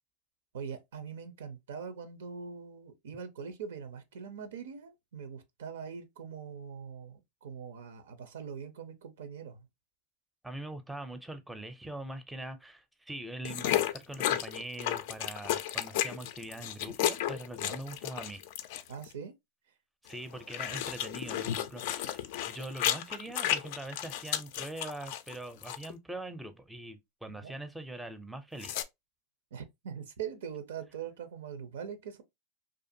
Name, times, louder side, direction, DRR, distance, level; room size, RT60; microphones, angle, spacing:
voice 1, 0.5-9.7 17.6-17.8 18.9-19.3 27.3-27.6 29.5-32.2, right 7 dB, 85° right, 0.5 m, -42 dB
voice 2, 10.4-18.4 20.0-22.2 22.5-28.8, right 1 dB, 5° right, 0.5 m, -42 dB
sound 1, 13.4-19.1 20.1-25.4 25.6-25.9 28.6-28.8, left 11 dB, 65° left, 0.3 m, -33 dB
2.5 x 2.4 x 2.6 m
hypercardioid pair, 110°, 0 cm